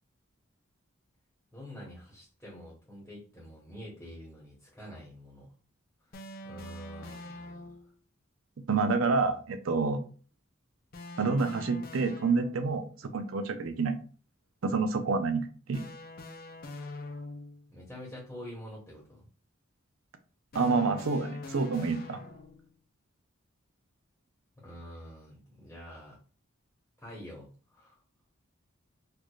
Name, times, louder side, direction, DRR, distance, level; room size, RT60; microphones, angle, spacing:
voice 1, 1.5-5.5 6.4-7.8 17.7-19.3 24.6-26.2 27.0-28.0, equal, 5° left, -5 dB, 1.1 m, -47 dB
sound 1, 6.1-7.9 10.9-12.8 15.7-17.7 20.5-22.7, left 2 dB, 45° left, 0.5 m, -44 dB
voice 2, 8.7-10.0 11.2-12.9 13.1-14.0 14.6-15.8 20.5-22.2, right 4 dB, 75° right, 9 dB, 0.5 m, -28 dB
4.6 x 2.4 x 2.4 m, 0.39 s
head